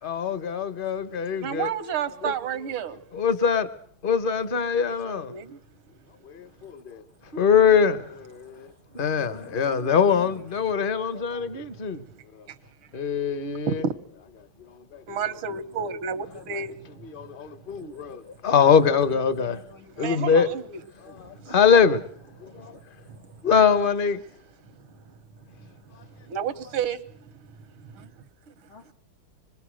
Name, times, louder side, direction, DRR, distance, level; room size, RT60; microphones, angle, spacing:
voice 1, 0.0-1.7 2.2-2.3 3.1-3.7 4.0-5.3 6.2-7.0 7.3-12.0 12.3-12.5 12.9-13.8 14.6-15.0 17.0-19.6 20.0-20.5 21.0-22.1 22.4-22.8 23.4-24.2 25.9-26.0, left 7 dB, 35° left, 1.0 m, -23 dB
voice 2, 1.4-3.0 4.9-5.6 12.5-12.6 13.7-13.9 15.1-16.7 17.2-17.3 20.0-20.8 21.1-21.6 22.5-23.2 24.9-25.0 25.6-28.5, right 7 dB, 80° right, 2.0 m, -32 dB
voice 3, 9.2-11.8 16.2-16.7 18.6-20.5 28.7-28.9, left 5 dB, 85° left, 3.6 m, -48 dB
26.0 x 21.0 x 6.4 m
omnidirectional pair, 2.3 m